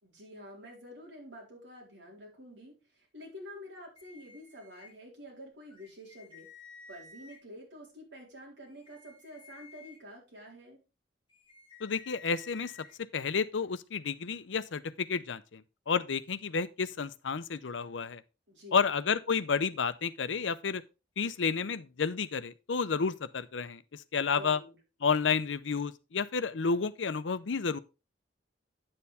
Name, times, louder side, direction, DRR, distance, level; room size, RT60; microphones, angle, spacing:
voice 1, 0.0-6.5 6.9-10.8 18.5-18.8 24.2-24.8, equal, 75° right, 4.1 m, -49 dB
sound 1, 4.0-4.9 5.7-7.4 8.7-10.0 11.3-12.9, left 5 dB, 30° left, 2.1 m, -54 dB
voice 2, 11.8-12.7 13.1-15.6 15.9-18.2 18.7-20.8 21.2-24.6 25.0-27.8, left 5 dB, 85° left, 0.6 m, -31 dB
9.6 x 7.0 x 3.4 m
head